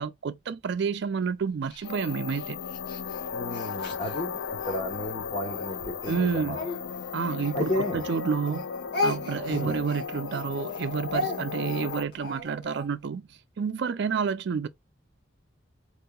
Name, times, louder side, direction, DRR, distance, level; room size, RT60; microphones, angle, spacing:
voice 1, 0.0-2.6 6.1-6.6 7.1-8.7 9.0-13.3 13.6-14.7, right 6 dB, 60° right, 0.4 m, -29 dB
Speech, 1.7-4.8 5.4-8.2 8.5-12.9, left 2 dB, 55° left, 2.0 m, -35 dB
sound 1, 1.8-12.0, left 6 dB, 85° left, 0.4 m, -36 dB
voice 2, 3.3-4.3 4.6-6.6 7.5-8.0 9.5-9.8, left 1 dB, 35° left, 1.0 m, -32 dB
4.5 x 2.8 x 2.2 m
head